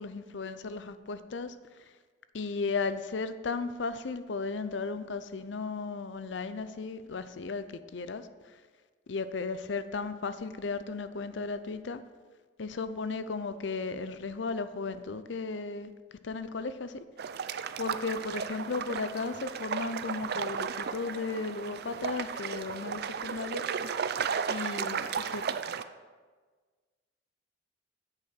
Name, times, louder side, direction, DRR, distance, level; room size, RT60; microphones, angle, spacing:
voice 1, 0.0-1.5 2.3-7.7 7.9-8.3 9.1-12.0 12.6-15.9 16.2-16.9 17.8-23.6 24.5-25.4, left 4 dB, 70° left, 12 dB, 0.6 m, -35 dB
sound 1, 17.2-25.8, right 6 dB, 60° right, 0.5 m, -34 dB
9.4 x 8.1 x 5.8 m, 1.4 s
head